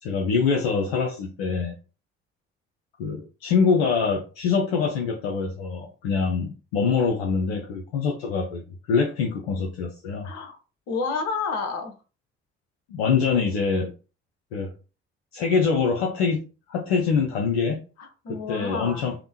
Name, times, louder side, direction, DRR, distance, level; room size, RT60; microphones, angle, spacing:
voice 1, 0.0-1.7 3.0-10.3 12.9-13.9 14.5-14.7 15.3-17.8 18.3-19.1, left 5 dB, 70° left, 1 dB, 0.6 m, -24 dB
voice 2, 10.2-10.6 10.9-11.9 18.0-19.1, left 4 dB, 55° left, 4 dB, 1.0 m, -30 dB
3.4 x 2.1 x 2.7 m, 0.33 s
figure-of-eight pair, 45°, 32 cm